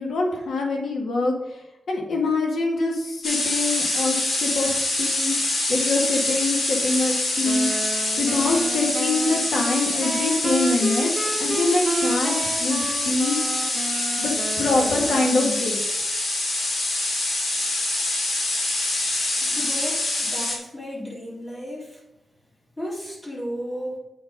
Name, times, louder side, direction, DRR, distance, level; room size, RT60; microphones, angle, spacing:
voice 1, 0.0-1.3 1.9-4.7 5.0-5.4 5.7-7.7 8.2-12.3 12.6-13.4 14.2-14.3 14.6-15.8, left 3 dB, 75° left, -1 dB, 1.9 m, -24 dB
sound 1, 3.2-20.6, left 2 dB, 60° left, 2.8 m, -25 dB
sound 2, 7.4-15.4, right 3 dB, 30° right, 0.7 m, -31 dB
voice 2, 19.4-22.0 22.8-24.0, equal, 20° left, -5 dB, 3.4 m, -34 dB
8.3 x 5.4 x 5.3 m, 0.92 s
wide cardioid pair, 130°, 0 cm